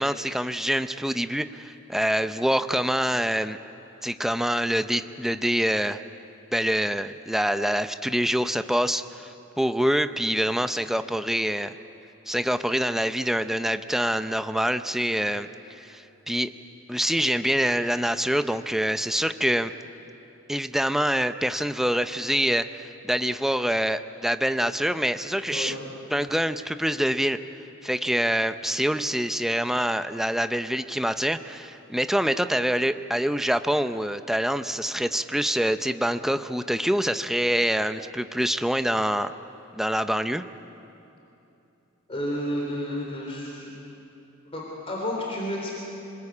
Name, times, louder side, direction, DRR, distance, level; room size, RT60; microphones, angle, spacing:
voice 1, 0.0-3.6 4.0-6.0 6.5-11.7 12.3-16.5 16.9-19.7 20.5-25.8 26.1-27.4 27.8-39.3 39.7-40.4, equal, ahead, 10 dB, 0.6 m, -25 dB
voice 2, 42.1-43.7 44.5-45.8, equal, 30° left, -2 dB, 3.6 m, -31 dB
26.5 x 20.5 x 8.5 m, 2.9 s
head